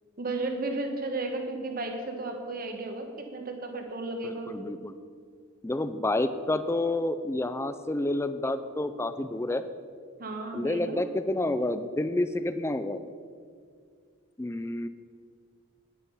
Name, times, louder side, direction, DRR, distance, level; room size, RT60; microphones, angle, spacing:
voice 1, 0.2-4.5 10.2-11.0, right 2 dB, 40° right, 4 dB, 1.4 m, -34 dB
voice 2, 4.2-4.9 5.6-9.6 10.5-13.0 14.4-14.9, left 2 dB, 10° left, 11 dB, 0.4 m, -29 dB
10.0 x 9.9 x 5.5 m, 2.2 s
head